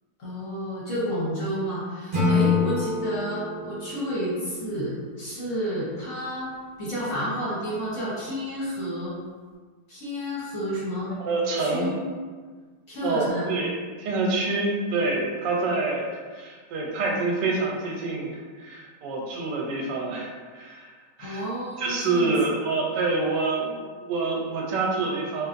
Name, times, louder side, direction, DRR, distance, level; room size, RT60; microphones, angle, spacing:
voice 1, 0.2-9.1 9.9-11.1 11.6-12.0 12.9-13.5 21.2-22.3 23.0-23.2, equal, 55° left, -7 dB, 1.0 m, -30 dB
Acoustic guitar / Strum, 2.1-5.3, left 4 dB, 50° right, 0.6 m, -27 dB
voice 2, 11.1-11.9 13.0-13.7 14.0-20.9 21.2-21.4 21.8-25.5, right 3 dB, 80° right, -1 dB, 1.2 m, -27 dB
3.2 x 2.8 x 2.4 m, 1.5 s
omnidirectional pair, 1.9 m